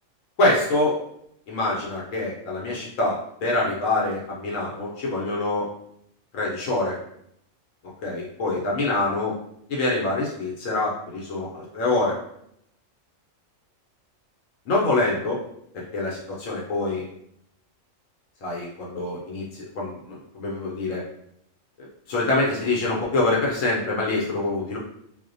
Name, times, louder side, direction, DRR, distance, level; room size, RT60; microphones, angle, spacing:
voice 1, 0.4-1.0 1.5-5.7 6.3-7.0 8.0-9.3 9.7-12.2 14.7-15.4 15.7-17.1 18.4-21.0 21.8-24.8, left 2 dB, 80° left, -4 dB, 1.0 m, -25 dB
2.3 x 2.1 x 2.5 m, 0.73 s
omnidirectional pair, 1.4 m